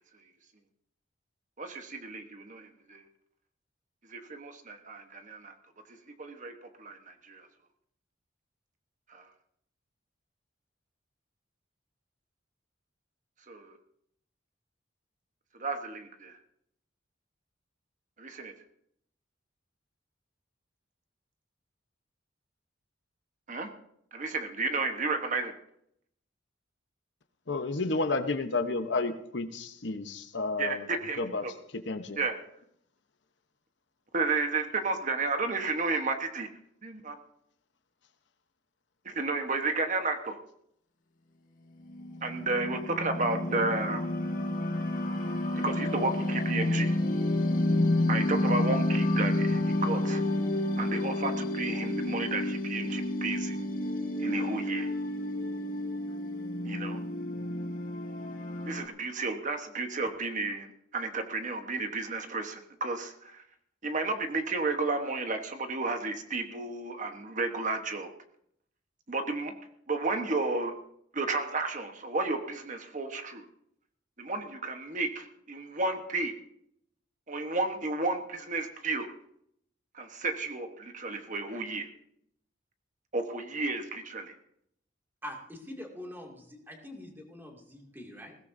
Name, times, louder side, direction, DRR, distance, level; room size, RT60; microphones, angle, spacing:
voice 1, 1.6-3.0 4.1-5.5 6.2-6.5 6.8-7.5 9.1-9.2 13.5-13.8 15.6-16.4 18.2-18.5 23.5-23.7 24.1-25.5 30.6-31.5 32.1-32.4 34.1-36.5 36.8-37.1 39.0-40.4 42.2-44.1 45.6-46.9 48.1-50.2 50.8-53.6 54.2-54.9 56.6-57.0 58.7-63.4 63.8-68.1 69.1-69.5 69.9-70.8 71.1-73.4 74.2-76.3 77.3-79.1 79.9-81.9 83.1-84.3, right 3 dB, 40° right, 6 dB, 1.2 m, -32 dB
voice 2, 27.5-30.9 31.2-31.4 31.9-32.2, left 3 dB, 65° left, 8 dB, 1.0 m, -31 dB
sound 1, 41.9-58.9, left 1 dB, 45° left, 2.0 m, -30 dB
voice 3, 85.2-88.4, left 1 dB, 10° right, 0 dB, 2.5 m, -44 dB
20.0 x 16.5 x 2.7 m, 0.71 s
head